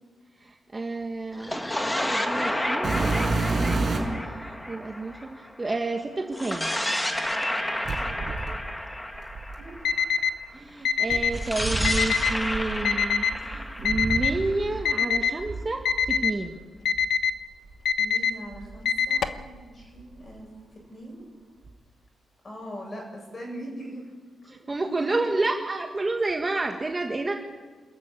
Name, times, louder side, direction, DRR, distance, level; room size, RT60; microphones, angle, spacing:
voice 1, 0.4-6.7 10.5-16.5 24.5-27.3, right 2 dB, 20° right, 3 dB, 1.5 m, -30 dB
sound 1, 1.3-5.7 6.3-10.3 11.3-15.1, left 1 dB, 10° left, 1.5 m, -31 dB
sound 2, 2.8-4.2 5.1-5.2 7.8-9.9 11.1-14.8 15.1-16.2 16.9-17.1 17.7-17.8 18.5-19.6 19.8-20.3 21.6-21.7, right 3 dB, 40° right, 5.3 m, -30 dB
voice 2, 7.9-8.3 9.6-9.7 18.0-20.5 20.9-21.2 22.4-24.1 24.5-25.3, equal, 25° left, 0 dB, 7.8 m, -41 dB
Alarm, 9.8-10.3 10.8-11.3 11.8-12.3 12.9-13.3 13.9-14.3 14.9-15.3 15.9-16.3 16.9-17.3 17.9-18.3 18.9-19.4, left 7 dB, 70° left, 1.1 m, -24 dB
26.5 x 14.0 x 9.0 m, 1.4 s
wide cardioid pair, 150°, 0 cm